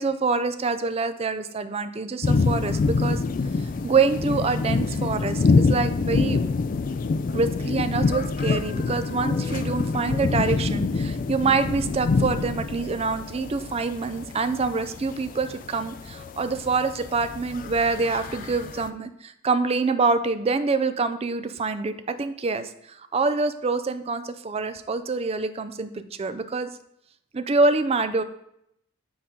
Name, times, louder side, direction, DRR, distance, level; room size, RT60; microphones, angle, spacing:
voice 1, 0.0-3.2 3.8-6.5 7.3-26.7 27.3-28.2, right 4 dB, 30° right, 10 dB, 0.4 m, -26 dB
sound 1, 2.2-18.9, left 4 dB, 45° left, 0.3 m, -26 dB
7.6 x 4.2 x 3.7 m, 0.76 s
head